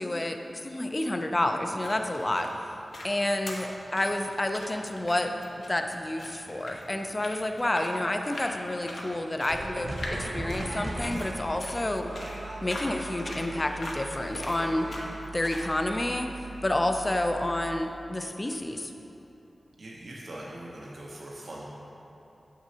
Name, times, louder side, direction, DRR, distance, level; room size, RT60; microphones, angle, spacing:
voice 1, 0.0-2.5 3.0-5.3 5.7-12.1 12.6-14.9 15.3-18.9, left 1 dB, 25° left, 5 dB, 0.4 m, -29 dB
sound 1, 1.6-15.7, left 1 dB, 70° left, 0.8 m, -42 dB
sound 2, 9.5-17.8, right 1 dB, 35° right, 0.9 m, -39 dB
voice 2, 19.8-21.7, right 1 dB, 65° right, -4 dB, 0.7 m, -41 dB
7.2 x 6.1 x 2.7 m, 2.9 s
wide cardioid pair, 110°, 0 cm